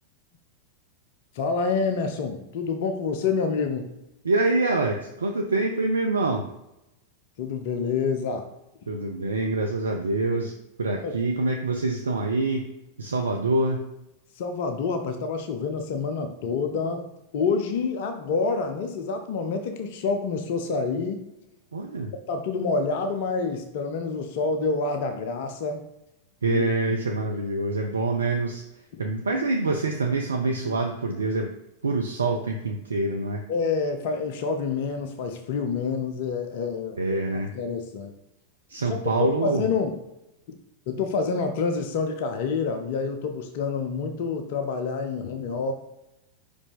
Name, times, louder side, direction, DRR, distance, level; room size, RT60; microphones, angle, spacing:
voice 1, 1.3-3.9 7.4-8.5 11.0-11.1 14.3-17.1 17.3-21.2 22.3-25.8 26.5-26.6 28.9-29.0 33.5-37.0 37.5-38.1 38.9-39.0 39.4-39.9 40.9-45.7, left 4 dB, 50° left, 7 dB, 0.6 m, -27 dB
voice 2, 4.2-6.5 8.9-12.7 13.0-13.8 21.7-22.1 26.4-31.5 31.8-33.4 37.0-37.5 38.7-39.7, right 2 dB, 75° right, 3 dB, 0.5 m, -26 dB
5.4 x 5.0 x 3.5 m, 0.90 s
figure-of-eight pair, 90°, 0 cm